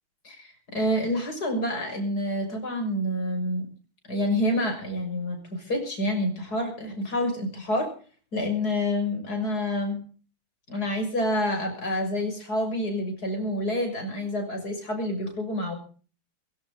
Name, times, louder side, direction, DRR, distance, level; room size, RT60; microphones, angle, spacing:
voice 1, 0.2-3.7 4.1-7.9 8.3-10.0 10.7-15.8, left 1 dB, 45° left, 4 dB, 7.0 m, -28 dB
19.5 x 17.0 x 3.9 m, 0.41 s
omnidirectional pair, 2.3 m